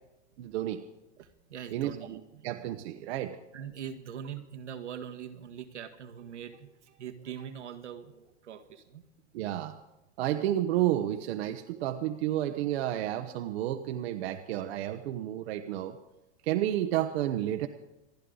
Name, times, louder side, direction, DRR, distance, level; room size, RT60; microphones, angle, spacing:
voice 1, 0.4-0.8 1.7-3.4 9.3-9.7 10.2-16.0 16.4-17.7, right 12 dB, 65° right, 7 dB, 1.1 m, -31 dB
voice 2, 1.2-2.6 3.5-9.0, right 8 dB, 85° right, 4 dB, 1.8 m, -43 dB
27.0 x 11.0 x 3.9 m, 1.0 s
hypercardioid pair, 110°, 34 cm